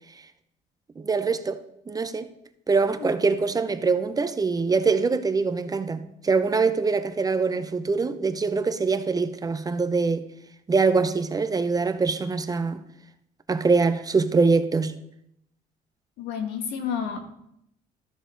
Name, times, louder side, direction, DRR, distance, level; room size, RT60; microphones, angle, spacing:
voice 1, 1.0-1.6 1.9-2.3 2.7-10.2 10.7-12.8 13.5-15.0, right 4 dB, 20° right, 0.7 m, -23 dB
voice 2, 16.2-17.2, left 7 dB, 90° left, 1.7 m, -30 dB
13.5 x 6.8 x 3.8 m
cardioid pair, 110°, 17 cm